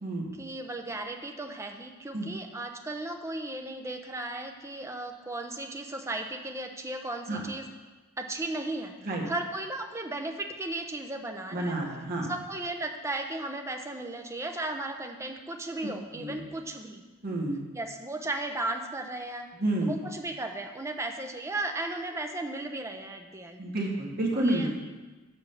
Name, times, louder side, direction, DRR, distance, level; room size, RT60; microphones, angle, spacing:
voice 1, 0.4-7.7 8.2-8.9 9.3-11.8 12.3-17.0 17.7-19.5 19.8-23.6 24.3-24.7, right 2 dB, 15° right, 4 dB, 0.6 m, -35 dB
voice 2, 11.5-12.3 16.1-16.4 17.2-17.6 19.5-19.9 23.6-24.7, right 1 dB, 45° right, -1 dB, 1.6 m, -29 dB
7.1 x 5.4 x 6.8 m, 1.2 s
head